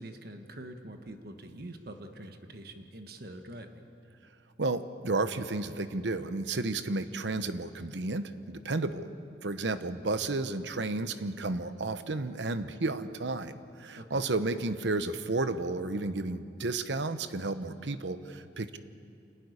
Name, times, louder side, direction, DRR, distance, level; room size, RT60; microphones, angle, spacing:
voice 1, 0.0-3.8 14.0-14.2, right 1 dB, 55° right, 6 dB, 1.3 m, -45 dB
voice 2, 4.6-9.1 9.4-18.8, right 2 dB, 75° right, 11 dB, 0.9 m, -32 dB
26.5 x 11.5 x 9.9 m, 2.5 s
head